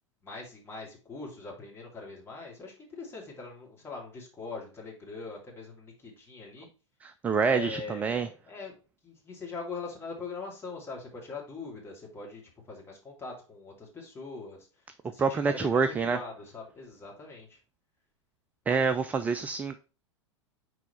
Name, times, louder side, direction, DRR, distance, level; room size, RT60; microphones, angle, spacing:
voice 1, 0.2-6.7 7.5-8.8 9.0-12.4 12.7-14.7 15.1-17.6, left 4 dB, 15° left, -2 dB, 2.6 m, -42 dB
voice 2, 7.0-8.3 15.2-16.2 18.7-19.8, right 5 dB, 10° right, 10 dB, 0.3 m, -27 dB
6.1 x 4.6 x 4.1 m, 0.35 s
figure-of-eight pair, 95°, 16 cm